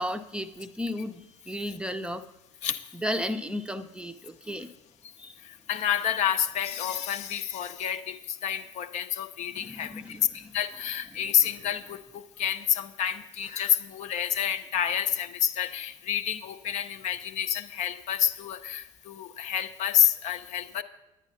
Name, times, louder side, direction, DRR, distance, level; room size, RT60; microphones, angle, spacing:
voice 1, 0.0-2.3 2.9-4.7 5.2-5.3 9.5-10.5, equal, 5° right, 8 dB, 0.6 m, -34 dB
voice 2, 5.4-20.8, left 9 dB, 45° left, 10 dB, 0.6 m, -29 dB
9.8 x 9.6 x 5.5 m, 0.96 s
figure-of-eight pair, 60°, 17 cm